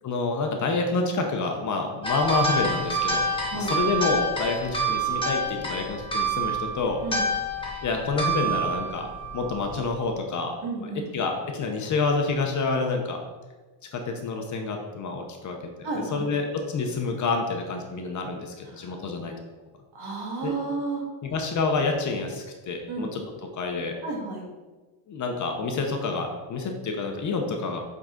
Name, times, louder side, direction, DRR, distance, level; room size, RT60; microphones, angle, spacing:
voice 1, 0.0-3.3 3.5-7.0 7.8-9.1 9.3-10.9 11.1-13.2 13.9-19.3 20.4-20.6 21.2-23.2 23.5-23.9 25.1-27.8, left 4 dB, 35° left, 3 dB, 0.8 m, -28 dB
sound 1, 2.0-9.9, right 2 dB, 10° left, 1.2 m, -28 dB
voice 2, 10.6-11.1 15.8-16.3 18.7-18.9 19.9-21.0 22.9-23.1 24.0-24.5, right 3 dB, 55° right, -1 dB, 1.8 m, -32 dB
7.7 x 3.9 x 3.7 m, 1.3 s
cardioid pair, 135°, 48 cm